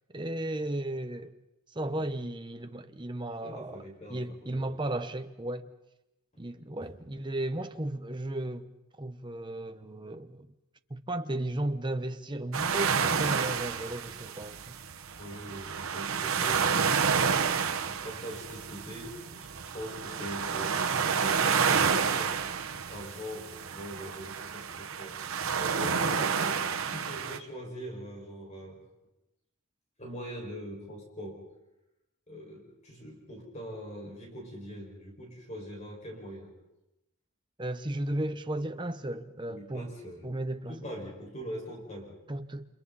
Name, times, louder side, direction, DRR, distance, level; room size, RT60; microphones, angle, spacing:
voice 1, 0.1-1.3 1.7-3.8 4.1-5.7 6.4-8.7 9.0-10.5 10.9-14.8 37.6-39.9 40.2-40.7 42.3-42.7, right 1 dB, 20° right, 1.1 m, -35 dB
voice 2, 3.4-4.8 6.8-6.9 15.2-17.1 17.8-22.5 22.9-25.2 25.6-28.8 30.0-31.5 32.3-36.5 39.5-40.3 40.7-42.2, equal, 35° left, 5.7 m, -42 dB
sound 1, 12.5-27.4, right 6 dB, 85° right, 1.2 m, -30 dB
30.0 x 27.5 x 4.2 m
head